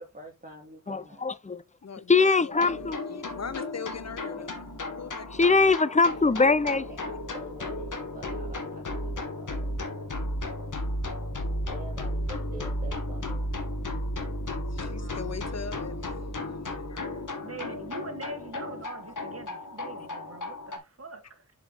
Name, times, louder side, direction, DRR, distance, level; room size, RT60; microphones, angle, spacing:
voice 1, 0.0-1.3 6.3-10.0 11.7-13.5, right 1 dB, 25° right, 2.5 m, -46 dB
voice 2, 0.9-1.6 2.1-3.0 5.4-6.8, left 4 dB, 25° left, 0.6 m, -22 dB
voice 3, 1.8-4.7 5.0-5.5 14.5-17.7 19.9-20.1, left 6 dB, 55° left, 0.9 m, -42 dB
sound 1, 2.5-20.8, left 1 dB, 75° left, 1.7 m, -34 dB
voice 4, 14.9-15.4 17.4-21.5, right 2 dB, 50° right, 1.8 m, -43 dB
7.2 x 5.3 x 3.5 m
wide cardioid pair, 65°, 32 cm